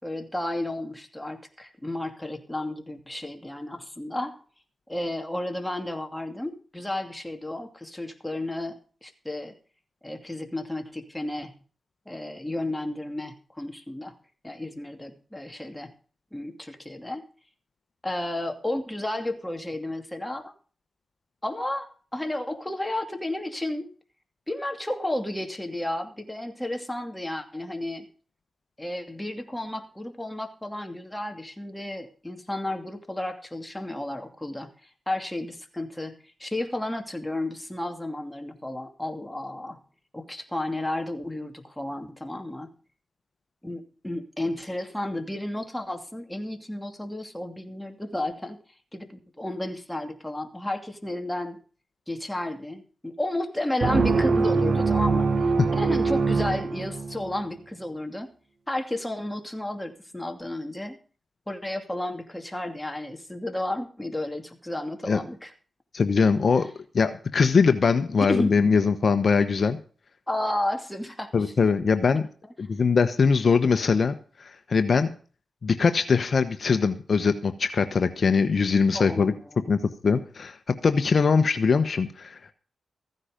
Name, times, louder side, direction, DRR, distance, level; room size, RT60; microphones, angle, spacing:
voice 1, 0.0-4.4 4.9-9.5 10.0-11.6 12.1-14.1 14.4-15.9 16.3-17.2 18.0-20.5 21.4-23.9 24.5-28.1 28.8-36.1 36.4-39.8 40.1-42.7 43.6-48.6 48.9-51.6 52.1-58.3 58.7-61.0 61.5-65.5 68.2-68.5 70.3-71.5 78.9-79.7, left 1 dB, 10° left, 5 dB, 2.6 m, -32 dB
sound 1, 53.8-57.4, right 4 dB, 60° right, 1.5 m, -23 dB
voice 2, 65.9-66.7 66.9-69.8 71.3-72.3 72.6-74.1 74.4-75.1 75.6-79.3 79.7-82.5, left 5 dB, 60° left, 9 dB, 1.1 m, -22 dB
15.0 x 9.7 x 5.2 m, 0.40 s
cardioid pair, 50°, 0 cm